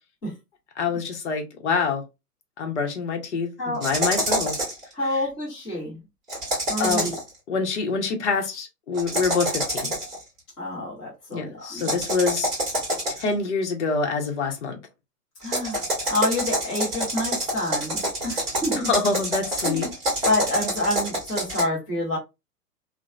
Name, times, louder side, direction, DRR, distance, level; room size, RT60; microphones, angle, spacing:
voice 1, 0.8-2.0 2.6-4.6 6.8-7.2 7.5-9.9 11.3-12.5 13.1-14.8 18.9-19.9, left 4 dB, 45° left, 0.8 m, -26 dB
sound 1, 3.8-4.8 6.3-7.3 8.9-10.2 11.8-13.4 15.4-21.6, right 1 dB, 15° right, 1.0 m, -27 dB
voice 2, 4.9-6.0 6.7-7.1 10.6-12.0 15.4-15.8 16.1-18.9 19.6-19.9 20.2-22.2, left 1 dB, 5° left, 0.5 m, -28 dB
2.8 x 2.1 x 2.3 m
figure-of-eight pair, 130°, 47 cm